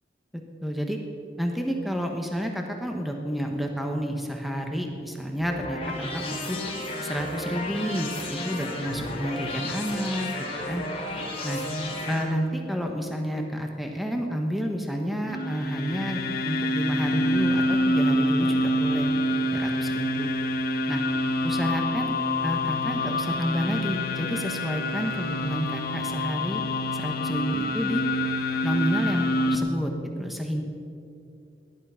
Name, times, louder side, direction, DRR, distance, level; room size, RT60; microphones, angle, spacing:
voice 1, 0.3-1.0 1.4-6.6 7.0-10.3 10.7-10.8 11.4-11.6 12.1-19.1 19.5-20.3 20.9-21.0 21.4-22.1 22.4-26.6 26.9-28.0 28.6-30.6, equal, ahead, 2 dB, 1.2 m, -30 dB
sound 1, 5.4-12.2, left 1 dB, 35° left, 3.0 m, -33 dB
sound 2, 15.2-29.6, left 1 dB, 60° left, 1.1 m, -26 dB
18.0 x 11.0 x 5.7 m, 2.5 s
head